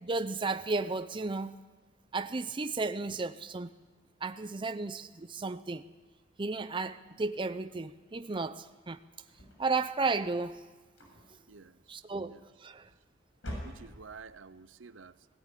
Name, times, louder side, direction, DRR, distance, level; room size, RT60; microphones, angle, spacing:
voice 1, 0.0-1.6 2.1-3.7 4.2-5.8 6.4-9.0 9.6-10.6 11.9-12.9, right 3 dB, 25° right, 0.6 m, -33 dB
sound 1, 9.2-10.4 10.9-11.6 12.5-13.0 13.3-14.3, equal, 75° left, 6.8 m, -45 dB
voice 2, 11.5-12.0 12.3-12.5 13.6-15.3, right 5 dB, 75° right, 0.8 m, -50 dB
18.5 x 17.5 x 9.1 m
head